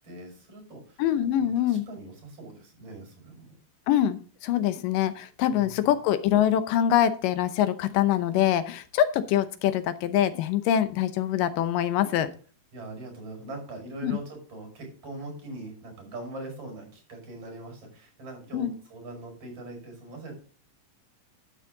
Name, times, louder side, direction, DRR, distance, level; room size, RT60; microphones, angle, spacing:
voice 1, 0.0-1.0 1.4-3.6 5.5-5.9 12.7-20.3, right 2 dB, 45° right, 1 dB, 6.5 m, -42 dB
voice 2, 1.0-1.9 3.9-12.3 14.0-14.2 18.5-18.8, left 11 dB, 90° left, 11 dB, 2.5 m, -24 dB
11.0 x 8.2 x 3.9 m, 0.39 s
omnidirectional pair, 3.8 m